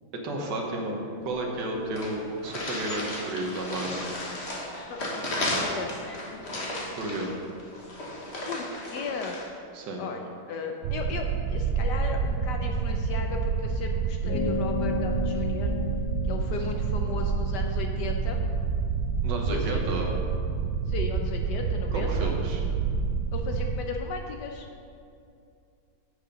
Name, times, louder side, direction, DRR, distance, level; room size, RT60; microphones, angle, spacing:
voice 1, 0.1-1.0 1.2-4.1 6.9-7.3 9.7-10.0 19.2-20.1 21.9-22.6, right 2 dB, 60° right, 0 dB, 1.7 m, -32 dB
sound 1, 1.3-1.4 1.6-1.7 2.0-9.5, left 1 dB, 35° left, 1.4 m, -34 dB
voice 2, 5.6-6.4 8.5-9.3 10.0-15.8 16.3-18.4 19.5-19.8 20.9-22.3 23.3-24.7, left 4 dB, 70° left, 3 dB, 1.1 m, -36 dB
sound 2, 10.8-23.8, right 5 dB, 85° right, 1.4 m, -28 dB
sound 3, 14.2-19.1, left 4 dB, 90° left, 1.4 m, -34 dB
7.8 x 6.7 x 5.1 m, 2.5 s
omnidirectional pair, 2.2 m